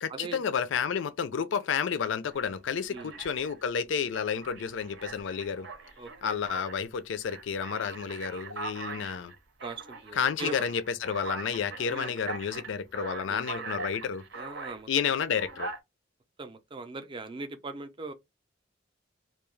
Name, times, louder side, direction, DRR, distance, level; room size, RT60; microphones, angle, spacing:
voice 1, 0.0-5.7 6.2-9.3 10.1-14.2 14.9-15.7, left 7 dB, 75° left, 0.4 m, -31 dB
Alarm, 2.3-2.5 3.0-3.6 4.1-6.8 7.2-14.8 15.3-15.8, right 3 dB, 65° right, 0.7 m, -41 dB
voice 2, 6.0-6.4 9.6-10.7 11.9-12.1 13.3-13.4 14.3-14.9 16.4-18.1, right 3 dB, 25° right, 0.4 m, -40 dB
2.3 x 2.3 x 3.0 m
head